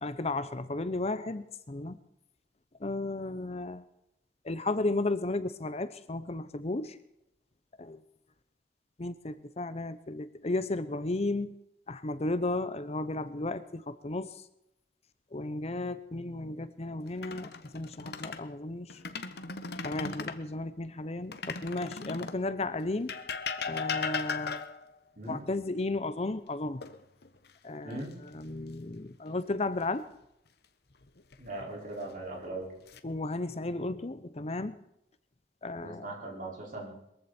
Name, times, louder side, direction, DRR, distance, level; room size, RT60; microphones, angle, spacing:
voice 1, 0.0-2.0 2.8-3.8 4.4-7.0 7.8-8.0 9.0-11.5 11.9-14.3 15.3-19.0 19.8-23.1 23.7-24.7 25.2-26.8 27.6-30.0 33.0-34.8 35.6-36.1, left 2 dB, 35° left, 13 dB, 0.8 m, -34 dB
sound 1, 17.1-18.4 18.9-20.4 21.3-22.4 23.1-24.9 26.8-27.5 27.9-28.1 31.0-31.6 32.4-33.0, left 5 dB, 60° left, 1.2 m, -37 dB
voice 2, 27.8-28.1 31.4-32.7 35.8-36.9, right 2 dB, 50° right, -2 dB, 5.3 m, -39 dB
22.0 x 15.0 x 4.4 m, 0.82 s
head